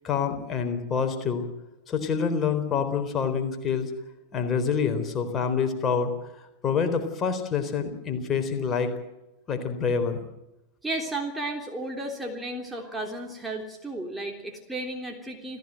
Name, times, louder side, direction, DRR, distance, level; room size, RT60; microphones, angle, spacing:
voice 1, 0.0-1.4 1.9-3.9 4.3-6.1 6.6-8.9 9.5-10.2, left 6 dB, 25° left, 6 dB, 4.1 m, -26 dB
voice 2, 10.8-15.6, right 2 dB, 10° right, 1 dB, 3.4 m, -33 dB
29.0 x 15.5 x 7.9 m, 0.96 s
figure-of-eight pair, 90°, 0 cm